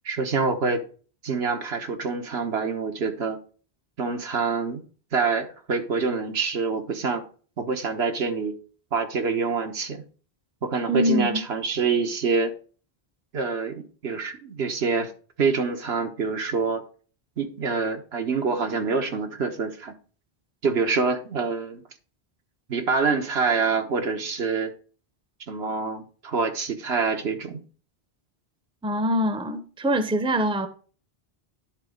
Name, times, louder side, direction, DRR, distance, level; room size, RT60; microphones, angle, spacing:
voice 1, 0.0-0.8 1.2-3.4 4.0-4.8 5.1-7.2 7.6-8.5 8.9-10.0 10.6-12.5 13.3-15.1 15.4-16.8 17.4-19.9 20.6-21.8 22.7-24.7 25.5-27.6, right 4 dB, 80° right, 1.4 m, -26 dB
voice 2, 10.9-11.4 28.8-30.7, equal, 5° right, 0.7 m, -24 dB
10.5 x 3.9 x 5.1 m
omnidirectional pair, 1.1 m